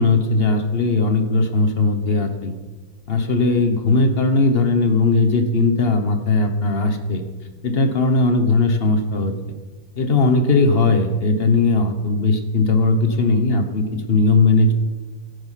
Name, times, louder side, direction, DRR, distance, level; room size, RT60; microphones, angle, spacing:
voice 1, 0.0-2.5 3.1-7.2 7.6-9.3 10.0-14.7, left 3 dB, 40° left, 7 dB, 0.9 m, -18 dB
14.5 x 8.6 x 5.8 m, 1.2 s
omnidirectional pair, 2.4 m